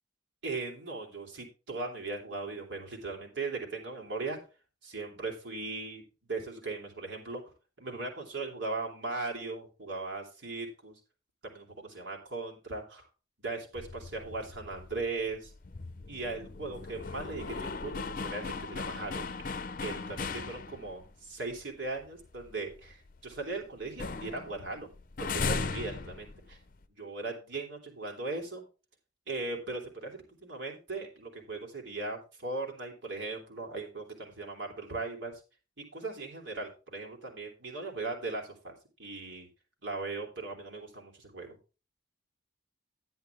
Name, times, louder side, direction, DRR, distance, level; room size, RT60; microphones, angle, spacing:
voice 1, 0.4-4.4 4.8-7.4 7.8-11.0 11.4-13.1 13.4-15.5 16.1-19.2 19.8-24.9 25.2-26.6 27.0-28.6 29.3-35.3 35.8-38.7 39.0-39.5 39.8-41.6, right 3 dB, 70° right, 1 dB, 3.1 m, -38 dB
sound 1, 13.8-21.1 21.5-21.6 22.0-23.5 23.8-26.8, left 4 dB, 45° left, 0.6 m, -38 dB
11.0 x 9.4 x 3.5 m, 0.32 s
head